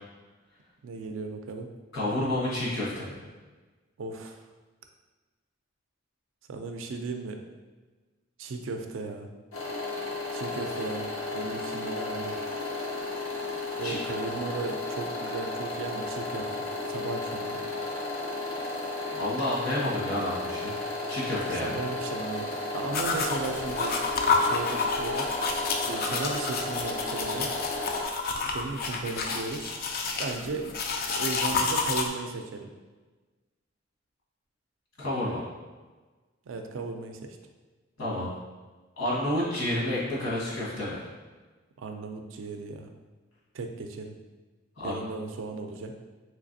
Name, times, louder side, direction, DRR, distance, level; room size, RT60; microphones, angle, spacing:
voice 1, 0.8-1.7 4.0-4.4 6.5-7.4 8.4-9.3 10.3-12.4 13.8-16.5 16.9-17.6 21.5-23.9 24.4-25.3 25.8-27.5 28.4-29.8 30.2-30.7 31.2-32.7 36.5-37.4 41.8-42.9 43.5-44.1 44.8-45.9, right 3 dB, 70° right, 5 dB, 0.4 m, -36 dB
voice 2, 1.9-3.2 13.8-14.0 19.1-20.7 21.1-21.8 35.0-35.4 38.0-38.3 39.0-41.1 44.8-45.0, left 1 dB, 70° left, -7 dB, 1.2 m, -30 dB
sound 1, 9.5-28.0, left 2 dB, 85° left, 0.8 m, -34 dB
sound 2, 22.9-32.1, left 4 dB, 45° left, 0.3 m, -29 dB
3.2 x 3.2 x 2.6 m, 1.3 s
head